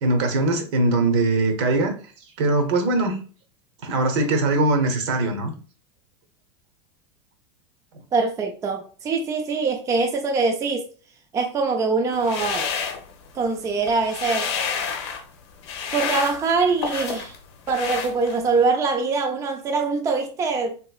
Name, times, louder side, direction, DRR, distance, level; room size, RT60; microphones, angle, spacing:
voice 1, 0.0-1.9 2.4-3.2 3.8-5.5, right 2 dB, 65° right, 0.9 m, -21 dB
voice 2, 8.1-10.9 11.3-12.7 13.3-14.5 15.9-17.3 17.7-20.8, right 4 dB, 20° right, 0.4 m, -23 dB
sound 1, 12.1-13.5 13.8-15.2 15.6-17.4 17.7-18.6, left 6 dB, 70° left, 0.7 m, -29 dB
3.0 x 2.9 x 2.3 m
supercardioid pair, 130°, 15 cm